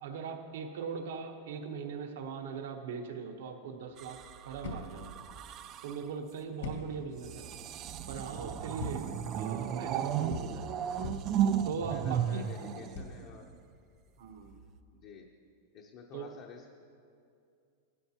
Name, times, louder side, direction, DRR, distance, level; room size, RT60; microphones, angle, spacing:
voice 1, 0.0-5.1 5.8-7.5 8.1-10.6 11.6-12.5 14.2-14.5 16.1-16.3, right 5 dB, 65° right, 4 dB, 1.0 m, -40 dB
sound 1, 3.8-14.6, left 3 dB, 85° left, 2.3 m, -46 dB
sound 2, 4.0-6.1 7.1-13.6 14.5-14.8, right 9 dB, 25° right, 0.3 m, -35 dB
voice 2, 11.9-13.5 14.9-15.3 15.7-16.7, left 6 dB, 30° left, 1 dB, 0.6 m, -50 dB
16.0 x 12.5 x 2.9 m, 2.4 s
supercardioid pair, 180°, 0 cm